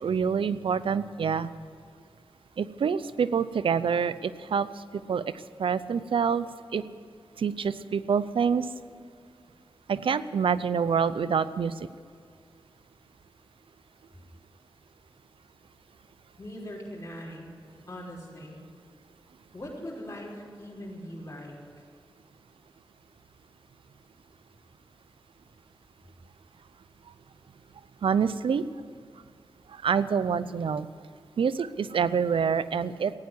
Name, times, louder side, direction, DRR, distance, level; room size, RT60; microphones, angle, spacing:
voice 1, 0.0-1.5 2.6-4.7 5.1-5.2 5.6-6.5 6.7-6.8 7.4-8.7 9.9-11.7 28.0-28.6 29.7-30.9 31.4-33.1, right 6 dB, 80° right, 15 dB, 0.6 m, -26 dB
voice 2, 16.4-17.5 17.9-18.6 19.5-21.6, equal, 30° left, -5 dB, 5.4 m, -40 dB
15.5 x 9.6 x 9.6 m, 2.2 s
cardioid pair, 50°, 9 cm